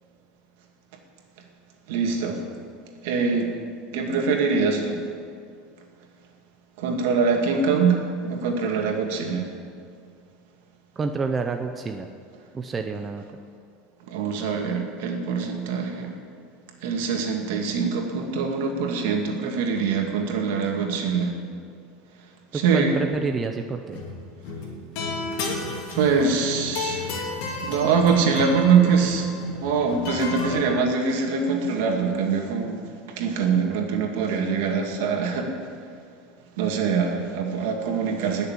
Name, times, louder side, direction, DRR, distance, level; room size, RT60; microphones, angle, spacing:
voice 1, 1.9-2.4 3.0-3.5 3.9-5.0 6.8-9.5 14.1-16.1 16.8-21.3 22.5-23.0 25.9-27.1 27.6-32.8 33.2-35.5 36.6-38.5, right 5 dB, 70° right, 2 dB, 2.3 m, -23 dB
voice 2, 11.0-12.1 12.5-13.2 22.5-24.0, right 4 dB, 15° right, 5 dB, 0.6 m, -28 dB
sound 1, 23.8-24.2 24.4-30.6, left 3 dB, 50° left, 2.8 m, -32 dB
19.5 x 6.9 x 7.5 m, 2.2 s
supercardioid pair, 165°, 0 cm